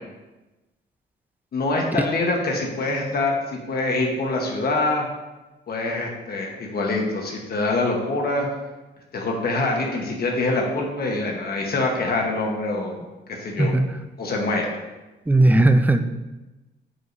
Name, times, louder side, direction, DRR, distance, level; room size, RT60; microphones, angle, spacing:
voice 1, 1.5-5.1 5.7-8.5 9.1-12.9 13.3-13.7 14.2-14.7, left 2 dB, 50° left, 0 dB, 1.2 m, -25 dB
voice 2, 15.3-16.0, right 2 dB, 10° right, 8 dB, 0.5 m, -17 dB
9.5 x 5.0 x 2.7 m, 1.1 s
cardioid pair, 90°, 20 cm